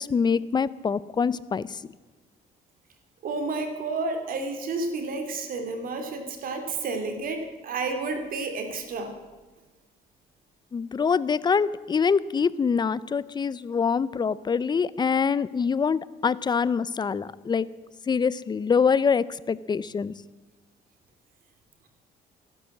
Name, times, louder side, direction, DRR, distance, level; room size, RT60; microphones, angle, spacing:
voice 1, 0.0-1.8 10.7-17.7 18.1-20.1, left 6 dB, 25° left, 18 dB, 0.6 m, -25 dB
voice 2, 3.2-9.1, right 3 dB, 55° right, 6 dB, 3.0 m, -31 dB
15.0 x 12.5 x 7.4 m, 1.3 s
cardioid pair, 110°, 17 cm